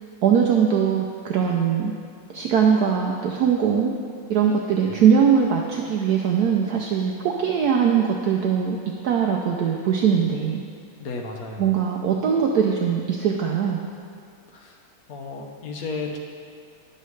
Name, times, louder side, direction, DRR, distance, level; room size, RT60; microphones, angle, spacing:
voice 1, 0.2-1.9 2.3-3.9 4.3-8.8 9.0-10.6 11.6-13.8, right 7 dB, 80° right, 0 dB, 0.8 m, -21 dB
voice 2, 11.0-11.7 14.5-14.8 15.1-16.2, left 3 dB, 60° left, 2 dB, 1.0 m, -33 dB
11.0 x 6.6 x 3.2 m, 2.3 s
omnidirectional pair, 2.3 m